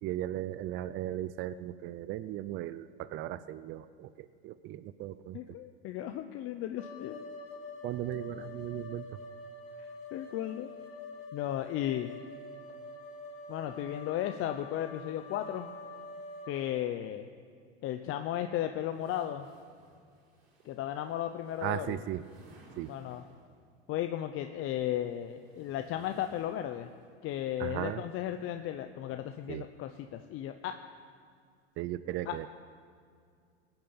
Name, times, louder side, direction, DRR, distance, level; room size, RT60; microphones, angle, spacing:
voice 1, 0.0-5.4 7.8-9.2 21.6-22.2 22.8-22.9 27.6-28.0 29.5-29.6 31.8-32.5, right 13 dB, 40° right, 14 dB, 0.5 m, -37 dB
voice 2, 5.3-7.2 9.8-10.7 11.3-12.1 13.5-15.7 16.5-17.3 17.8-19.5 20.6-22.0 22.9-23.2 23.9-26.9 27.2-30.8 32.3-32.5, left 11 dB, 40° left, 7 dB, 0.7 m, -35 dB
sound 1, 6.8-16.5, left 3 dB, 60° left, 4.3 m, -46 dB
sound 2, 18.9-23.6 24.6-27.0, right 2 dB, 85° right, 5.1 m, -60 dB
19.0 x 8.9 x 7.2 m, 2.2 s
hypercardioid pair, 105°, 32 cm